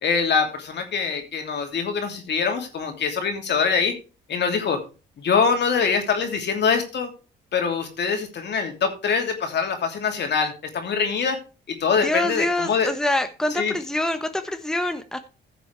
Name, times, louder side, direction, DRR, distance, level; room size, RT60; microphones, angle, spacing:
voice 1, 0.0-3.9 4.3-4.8 5.2-7.1 7.5-11.4 11.7-12.9 13.5-13.7, left 5 dB, 60° left, 4 dB, 2.8 m, -24 dB
voice 2, 12.0-15.2, left 1 dB, 5° left, 8 dB, 1.0 m, -25 dB
15.0 x 6.9 x 3.3 m, 0.32 s
cardioid pair, 90°, 20 cm